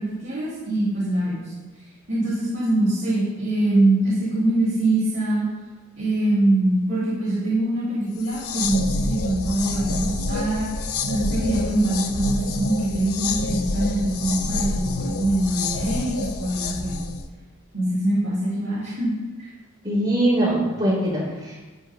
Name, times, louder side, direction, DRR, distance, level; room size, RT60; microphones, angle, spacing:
voice 1, 0.0-1.5 2.1-5.5 6.0-17.0 17.7-19.1 19.4-19.5, right 1 dB, 50° right, -10 dB, 4.8 m, -23 dB
sound 1, 8.2-17.3, left 3 dB, 80° left, 1.0 m, -28 dB
voice 2, 19.8-21.6, right 1 dB, 30° right, -11 dB, 3.5 m, -22 dB
13.5 x 5.7 x 7.2 m, 1.2 s
head